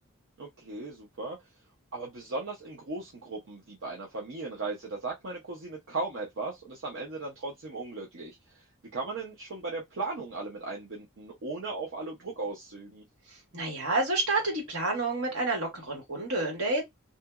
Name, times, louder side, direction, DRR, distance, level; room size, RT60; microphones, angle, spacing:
voice 1, 0.4-1.4 1.9-8.6 8.9-13.0, right 3 dB, 60° right, 0.6 m, -37 dB
voice 2, 13.5-16.8, right 2 dB, 75° right, 1.5 m, -29 dB
2.8 x 2.5 x 2.3 m
head